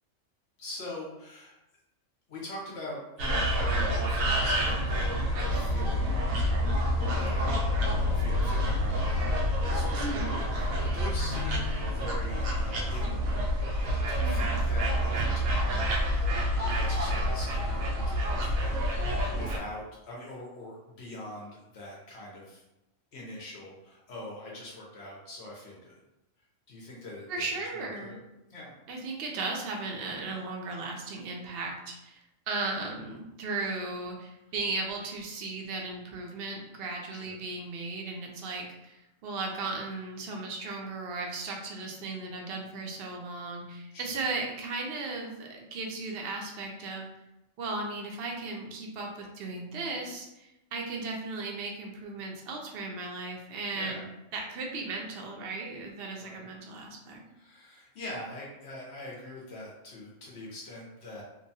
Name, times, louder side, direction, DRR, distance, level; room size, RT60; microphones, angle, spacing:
voice 1, 0.6-1.5 2.3-6.3 7.1-7.6 7.9-16.0 16.7-22.6 23.1-26.0 26.7-27.5 27.7-28.2 28.5-28.7 37.2-37.3 43.9-44.2 53.7-54.1 56.2-56.5 57.3-61.2, left 1 dB, 60° left, -3 dB, 0.8 m, -43 dB
sound 1, 3.2-19.6, equal, 90° right, 1.0 m, -28 dB
voice 2, 10.0-10.3 14.2-14.5 27.3-28.2 28.9-32.2 32.5-47.1 47.6-54.1 54.3-57.2, right 3 dB, 60° right, 1 dB, 0.6 m, -36 dB
2.8 x 2.2 x 2.6 m, 0.93 s
omnidirectional pair, 1.4 m